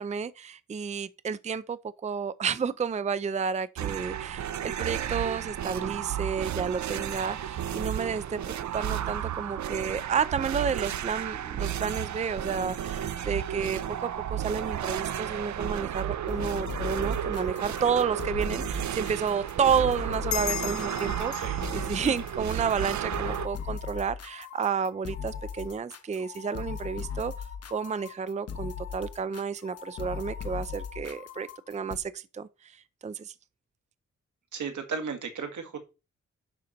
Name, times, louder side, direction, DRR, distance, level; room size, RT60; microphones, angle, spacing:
voice 1, 0.0-8.4 8.7-27.3 27.7-32.5 33.0-33.3, right 6 dB, 25° right, 0.4 m, -31 dB
sound 1, 3.8-23.5, right 10 dB, 75° right, 0.6 m, -33 dB
sound 2, 16.3-32.0, left 6 dB, 55° left, 1.1 m, -38 dB
sound 3, 20.3-23.4, left 11 dB, 75° left, 0.6 m, -37 dB
voice 2, 21.2-22.1 34.5-35.8, right 5 dB, 90° right, 1.9 m, -36 dB
11.5 x 4.2 x 5.1 m
wide cardioid pair, 130°, 29 cm